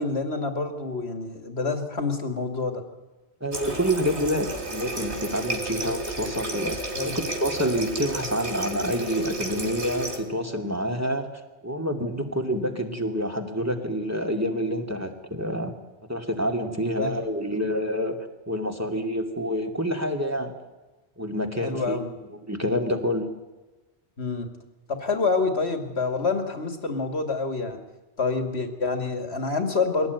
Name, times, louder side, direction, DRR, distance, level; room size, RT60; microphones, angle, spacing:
voice 1, 0.0-2.8 6.9-7.2 17.0-17.2 21.6-22.1 24.2-24.5 24.9-27.8 28.2-30.1, left 4 dB, 70° left, 6 dB, 2.7 m, -27 dB
voice 2, 3.4-11.3 11.6-15.7 16.1-18.2 18.5-20.5 21.2-23.3, equal, 15° right, 3 dB, 2.5 m, -28 dB
Water tap faucet, 3.5-10.2, right 2 dB, 75° right, 3.4 m, -32 dB
22.5 x 17.5 x 9.5 m, 1.2 s
omnidirectional pair, 1.1 m